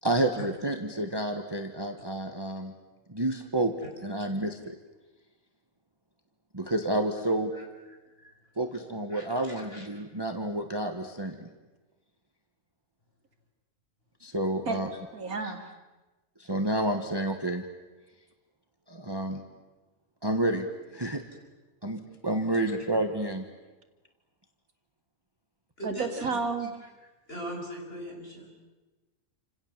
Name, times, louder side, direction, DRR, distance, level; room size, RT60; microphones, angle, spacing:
voice 1, 0.0-2.7 3.1-3.7 4.0-4.7 6.5-7.5 8.6-11.5 14.2-14.9 16.4-17.6 18.9-19.4 20.2-20.7 20.9-21.2 21.8-23.5, right 1 dB, 15° right, 5 dB, 1.5 m, -29 dB
voice 2, 14.7-15.7 25.8-26.7, right 4 dB, 75° right, 5 dB, 2.8 m, -32 dB
voice 3, 25.8-26.3 27.3-28.5, equal, 40° left, 0 dB, 7.1 m, -40 dB
29.5 x 27.0 x 7.5 m, 1.1 s
omnidirectional pair, 1.5 m